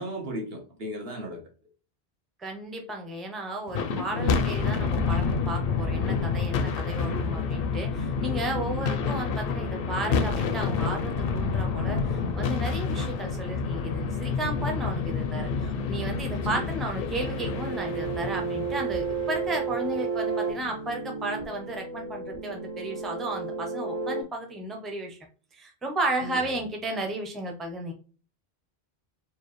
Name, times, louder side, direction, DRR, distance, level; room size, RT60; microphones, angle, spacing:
voice 1, 0.0-1.4 7.0-7.3 16.3-16.7 26.2-26.6, right 1 dB, 75° right, 1.4 m, -36 dB
voice 2, 2.4-25.2 25.5-27.9, right 2 dB, ahead, 0.6 m, -34 dB
sound 1, 3.7-20.1, left 5 dB, 70° left, 0.7 m, -28 dB
sound 2, 17.3-24.2, right 5 dB, 45° right, 0.5 m, -32 dB
4.5 x 2.4 x 3.1 m
omnidirectional pair, 1.0 m